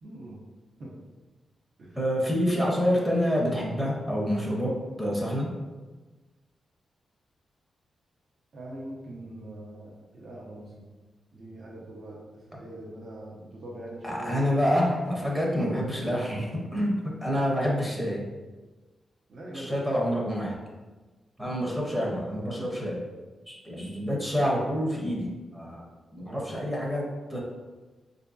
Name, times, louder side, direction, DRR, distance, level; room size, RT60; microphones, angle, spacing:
voice 1, 0.0-0.4 0.8-0.9 1.8-2.0 8.5-10.9 11.3-14.5 17.6-18.1 19.3-19.8 22.5-22.7 26.2-26.5, right 1 dB, 55° right, -4 dB, 0.6 m, -42 dB
voice 2, 2.0-5.5 12.5-12.6 14.0-18.2 19.5-20.6 21.4-23.0 23.5-25.9 26.1-27.4, equal, 10° right, -3 dB, 0.7 m, -27 dB
4.4 x 2.6 x 2.3 m, 1.2 s
wide cardioid pair, 115°, 0 cm